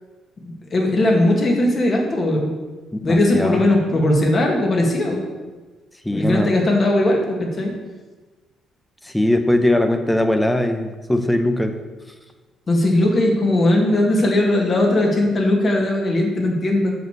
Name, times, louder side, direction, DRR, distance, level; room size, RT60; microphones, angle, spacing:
voice 1, 0.4-2.5 3.0-5.2 6.1-7.7 12.7-16.9, left 1 dB, 40° left, 1 dB, 2.1 m, -18 dB
voice 2, 2.9-3.6 6.0-6.5 9.0-11.8, left 1 dB, 5° left, 7 dB, 0.8 m, -20 dB
6.8 x 6.4 x 6.6 m, 1.3 s
cardioid pair, 105°, 0 cm